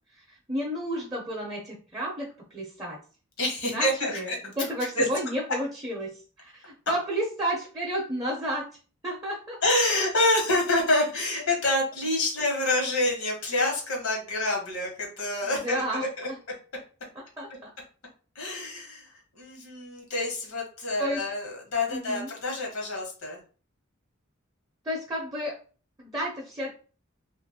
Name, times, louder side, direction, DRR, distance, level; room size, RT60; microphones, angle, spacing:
voice 1, 0.1-3.0 3.6-8.7 9.0-9.6 15.4-16.3 17.4-17.7 21.0-21.2 21.9-22.3 24.8-25.5 26.0-26.7, equal, 15° right, -3 dB, 0.6 m, -32 dB
voice 2, 3.4-4.4 4.9-5.1 9.6-15.8 16.2-16.3 18.3-23.4, left 2 dB, 80° left, -1 dB, 1.1 m, -27 dB
2.6 x 2.5 x 2.7 m, 0.38 s
head